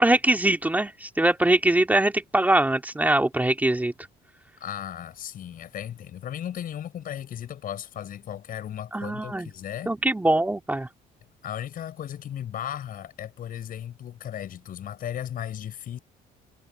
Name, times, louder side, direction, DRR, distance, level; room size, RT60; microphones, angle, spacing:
voice 1, 0.0-3.9 8.9-9.5 9.9-10.9, right 1 dB, 10° right, 2.8 m, -22 dB
voice 2, 4.6-10.0 11.4-16.0, left 10 dB, 55° left, 6.9 m, -36 dB
cardioid pair, 110°, 17 cm